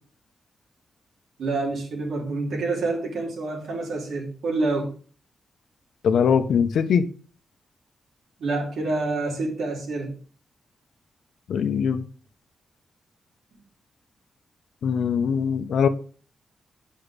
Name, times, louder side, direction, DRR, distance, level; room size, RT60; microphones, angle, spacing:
voice 1, 1.4-4.9 8.4-10.1, right 3 dB, 75° right, 0 dB, 3.5 m, -27 dB
voice 2, 6.0-7.0 11.5-12.1 14.8-15.9, left 7 dB, 85° left, 10 dB, 1.0 m, -21 dB
10.0 x 5.6 x 5.1 m, 0.40 s
wide cardioid pair, 170°, 0 cm